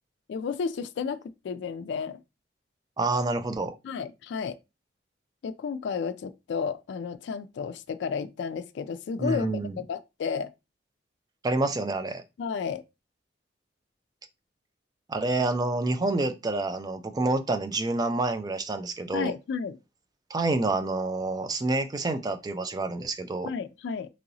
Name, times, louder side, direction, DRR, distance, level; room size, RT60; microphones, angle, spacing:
voice 1, 0.3-2.2 3.8-4.6 5.4-10.5 12.4-12.8 19.1-19.8 23.5-24.1, left 6 dB, 65° left, 0.3 m, -32 dB
voice 2, 3.0-3.7 9.2-9.8 11.4-12.2 15.1-19.3 20.3-23.5, right 2 dB, 20° right, 0.3 m, -28 dB
3.0 x 2.8 x 2.6 m
head